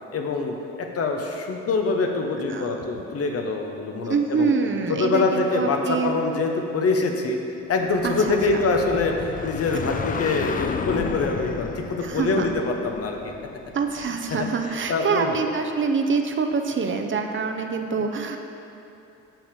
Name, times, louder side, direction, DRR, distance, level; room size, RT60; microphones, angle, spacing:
voice 1, 0.1-4.5 4.9-7.4 7.7-13.3 14.6-15.3, left 3 dB, 50° left, 3 dB, 0.9 m, -25 dB
voice 2, 4.0-6.2 8.0-8.4 12.0-12.5 13.7-18.4, right 5 dB, 40° right, 4 dB, 0.6 m, -25 dB
sound 1, 7.8-14.4, left 6 dB, 30° left, 0.4 m, -33 dB
6.6 x 6.1 x 5.1 m, 2.8 s
cardioid pair, 90°, 30 cm